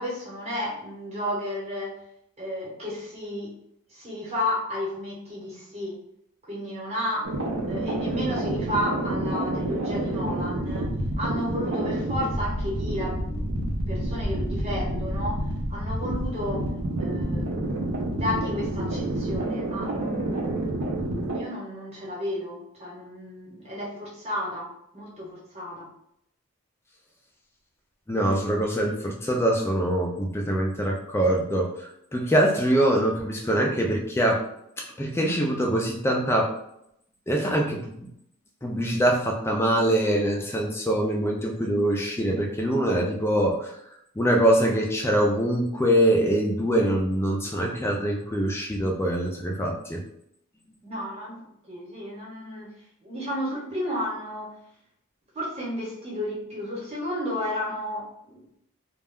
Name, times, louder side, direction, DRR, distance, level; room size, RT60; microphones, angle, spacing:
voice 1, 0.0-2.0 2.4-3.5 3.9-6.0 6.5-7.3 7.7-10.9 11.2-15.4 15.7-16.6 17.0-17.7 18.1-25.9 50.8-52.7 53.0-54.5 55.3-58.6, left 1 dB, 30° right, -6 dB, 0.9 m, -32 dB
sound 1, 7.2-21.4, right 1 dB, 75° right, 0.6 m, -28 dB
voice 2, 28.1-34.4 34.8-36.5 37.3-38.1 38.6-43.7 44.2-50.0, right 1 dB, 10° left, 0 dB, 0.4 m, -24 dB
2.3 x 2.1 x 3.5 m, 0.75 s
head